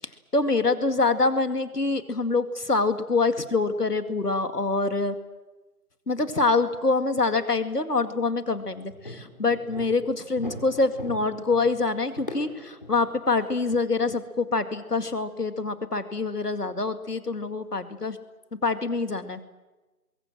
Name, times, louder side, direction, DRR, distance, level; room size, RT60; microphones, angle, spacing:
voice 1, 0.3-5.1 6.1-18.2 18.6-19.4, left 3 dB, 75° left, 9 dB, 2.2 m, -25 dB
sound 1, 8.9-13.7, left 1 dB, 30° left, 2.7 m, -41 dB
25.0 x 22.0 x 7.7 m, 1.2 s
figure-of-eight pair, 175°, 47 cm